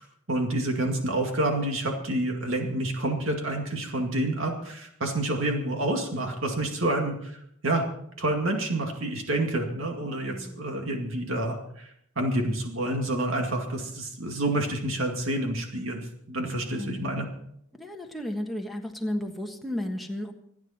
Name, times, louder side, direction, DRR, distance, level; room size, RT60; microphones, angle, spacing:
voice 1, 0.3-7.9 8.2-11.9 12.2-17.3, right 1 dB, 60° right, 2 dB, 2.2 m, -28 dB
voice 2, 10.2-10.8 16.7-17.3 17.8-20.3, left 1 dB, ahead, 4 dB, 1.5 m, -34 dB
27.0 x 9.7 x 4.4 m, 0.73 s
head